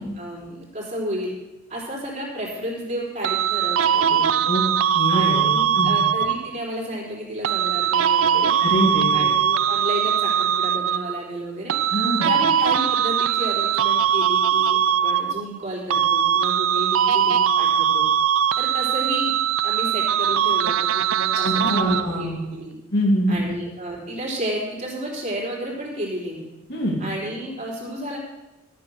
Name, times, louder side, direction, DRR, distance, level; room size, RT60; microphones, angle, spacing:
voice 1, 0.0-1.3 1.7-4.4 5.1-8.5 9.1-11.8 12.2-18.0 18.6-19.4 19.6-22.7 23.3-26.4 27.0-28.2, equal, 35° right, -3 dB, 4.0 m, -32 dB
sound 1, 3.2-6.6 7.4-11.2 11.7-15.6 15.9-22.2, right 9 dB, 75° right, 0.4 m, -21 dB
voice 2, 4.9-6.0 8.6-9.3 11.9-12.3 21.3-22.4 22.9-23.4 26.7-27.0, equal, 55° left, -3 dB, 2.7 m, -24 dB
13.0 x 7.7 x 6.3 m, 1.0 s
head